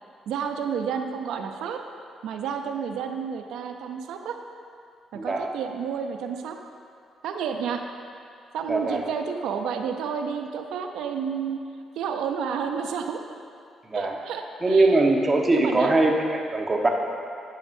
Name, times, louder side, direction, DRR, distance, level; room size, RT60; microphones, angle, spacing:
voice 1, 0.3-1.8 2.2-4.4 5.1-6.6 7.2-7.8 8.5-11.6 12.0-13.2 13.9-15.0 15.5-15.9, right 7 dB, 85° right, 5 dB, 0.6 m, -30 dB
voice 2, 5.1-5.5 8.7-9.1 13.9-14.2 14.6-16.9, right 2 dB, 25° right, 1 dB, 1.2 m, -21 dB
12.0 x 9.0 x 2.7 m, 2.4 s
cardioid pair, 90°, 0 cm